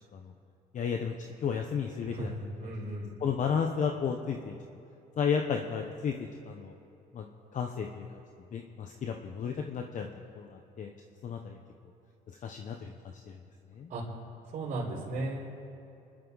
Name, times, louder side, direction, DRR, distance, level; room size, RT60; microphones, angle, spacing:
voice 1, 0.7-1.1 1.4-2.3 3.2-4.5 5.2-6.1 6.4-6.7 7.1-8.2 8.5-10.1 10.4-10.9 11.2-11.6 12.4-12.9 13.3-13.4 13.7-13.9, left 6 dB, 50° left, 3 dB, 1.1 m, -33 dB
voice 2, 2.0-3.1 13.9-14.0 14.5-15.5, right 2 dB, 50° right, -10 dB, 4.4 m, -36 dB
28.0 x 12.0 x 4.1 m, 2.7 s
cardioid pair, 110°, 17 cm